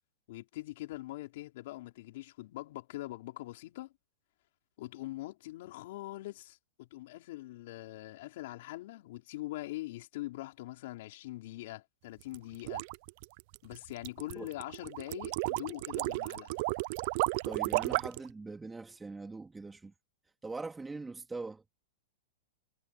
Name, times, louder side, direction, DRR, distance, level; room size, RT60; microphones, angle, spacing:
voice 1, 0.3-3.9 4.8-12.8 13.6-16.6, left 17 dB, 55° left, 5.0 m, -43 dB
sound 1, 12.2-18.3, right 24 dB, 45° right, 0.3 m, -33 dB
voice 2, 17.4-19.9 20.4-21.6, right 3 dB, 5° right, 2.9 m, -42 dB
supercardioid pair, 160°, 0 cm